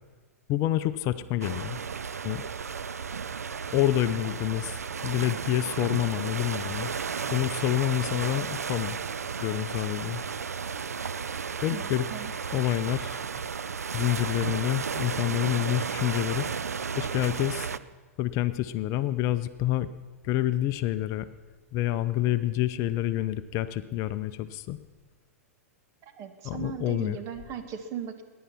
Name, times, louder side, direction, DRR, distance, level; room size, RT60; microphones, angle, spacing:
voice 1, 0.5-1.8 2.2-2.4 3.7-6.9 7.3-9.0 9.4-10.2 11.6-12.0 12.5-13.2 13.9-16.5 17.0-17.7 18.2-19.9 20.2-21.3 21.7-24.8 26.4-27.2, left 14 dB, 40° left, 13 dB, 0.6 m, -28 dB
sound 1, 1.4-17.8, right 6 dB, 85° right, 0.5 m, -33 dB
voice 2, 11.7-12.3 26.0-28.2, right 8 dB, 40° right, 7 dB, 1.7 m, -38 dB
20.5 x 10.5 x 5.8 m, 1.5 s
hypercardioid pair, 105°, 8 cm